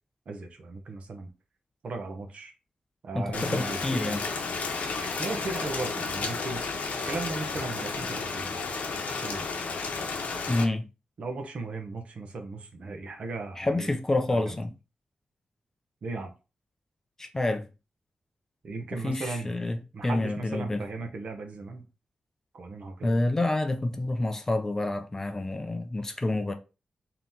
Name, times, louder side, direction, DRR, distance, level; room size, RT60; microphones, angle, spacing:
voice 1, 0.3-1.3 1.8-2.5 3.0-4.2 5.0-6.6 7.0-8.7 9.2-9.5 11.2-13.9 14.3-14.6 16.0-16.3 18.6-19.5 19.9-21.9 22.5-23.2, right 3 dB, 55° right, 0.8 m, -37 dB
voice 2, 3.1-4.2 10.5-10.9 13.6-14.7 17.2-17.7 19.0-20.8 23.0-26.5, left 2 dB, 20° left, 0.4 m, -28 dB
Rain, 3.3-10.6, left 4 dB, 80° left, 0.8 m, -32 dB
3.9 x 2.9 x 3.5 m
wide cardioid pair, 175°, 3 cm